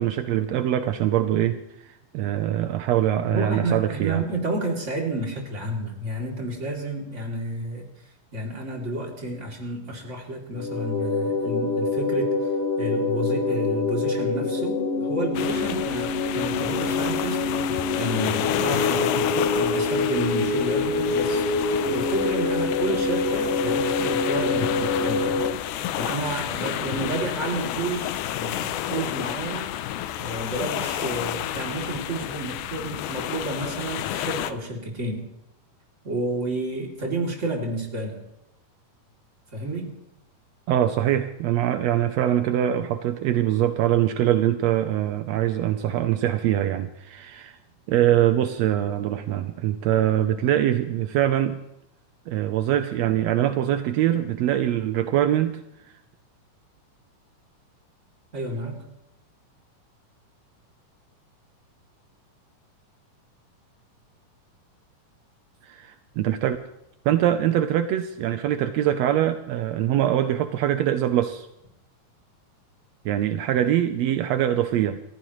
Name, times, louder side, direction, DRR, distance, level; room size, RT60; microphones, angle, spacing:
voice 1, 0.0-1.6 2.1-4.2 40.7-47.6 47.9-51.6 52.3-55.6 65.6-66.6 67.0-71.5 73.0-75.0, right 11 dB, 80° right, 9 dB, 1.5 m, -23 dB
voice 2, 3.3-7.9 8.3-12.4 12.8-21.5 21.9-29.7 30.2-35.2 36.0-38.2 39.5-39.9 58.3-58.8, right 2 dB, 20° right, 0 dB, 2.9 m, -30 dB
sound 1, 10.5-25.5, left 3 dB, 55° left, 2.0 m, -25 dB
sound 2, 15.3-34.5, left 12 dB, 75° left, 2.1 m, -30 dB
29.5 x 14.5 x 3.1 m, 0.82 s
omnidirectional pair, 3.8 m